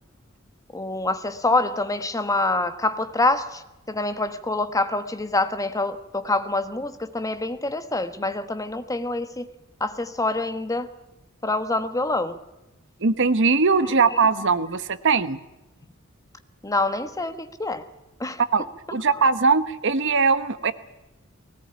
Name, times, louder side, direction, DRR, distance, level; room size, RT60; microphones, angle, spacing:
voice 1, 0.7-3.6 3.9-9.5 9.8-10.9 11.4-12.4 14.1-14.5 16.6-17.8 18.2-18.4, left 2 dB, 15° left, 1.2 m, -26 dB
voice 2, 13.0-15.4 18.5-18.6 18.9-20.7, right 4 dB, 60° right, 1.0 m, -20 dB
20.5 x 18.0 x 10.0 m
head